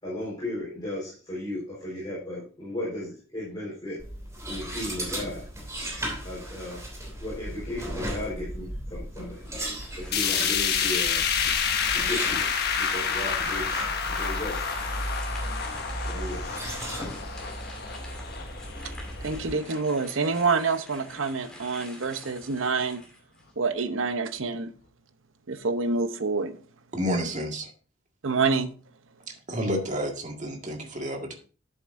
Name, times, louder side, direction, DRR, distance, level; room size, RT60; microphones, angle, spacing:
voice 1, 0.0-4.0 4.5-5.5 6.2-6.8 7.2-9.4 10.0-11.3 11.9-13.7 14.0-14.7 16.0-16.5, left 1 dB, 20° left, 4.3 m, -35 dB
sound 1, 4.0-19.5, right 1 dB, 15° right, 3.1 m, -36 dB
sound 2, 9.4-12.0 12.5-12.6 13.9-23.7, left 1 dB, 5° left, 2.7 m, -48 dB
sound 3, 10.1-20.3 20.7-20.8 21.2-21.3 22.1-22.2, left 6 dB, 50° left, 1.3 m, -29 dB
voice 2, 19.2-23.0 23.6-24.7 25.5-26.6 28.2-28.7, right 4 dB, 70° right, 0.8 m, -27 dB
voice 3, 26.9-27.7 29.3-31.3, equal, 35° right, 1.8 m, -30 dB
10.5 x 8.0 x 2.6 m
head